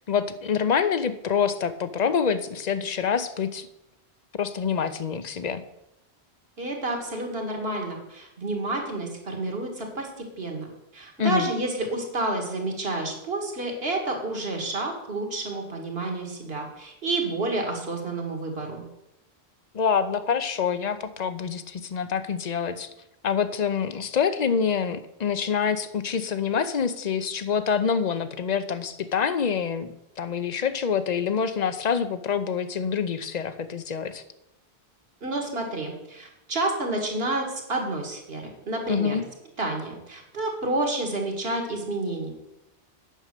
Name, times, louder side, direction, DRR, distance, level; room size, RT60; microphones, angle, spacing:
voice 1, 0.0-3.7 4.4-5.6 11.2-11.5 19.7-22.9 23.2-29.9 30.2-34.2 38.9-39.2, left 6 dB, 50° left, 13 dB, 0.6 m, -26 dB
voice 2, 6.6-10.7 10.9-18.8 35.2-39.2 39.6-42.3, right 2 dB, 65° right, 2 dB, 2.1 m, -29 dB
9.0 x 6.4 x 6.6 m, 0.88 s
omnidirectional pair, 1.1 m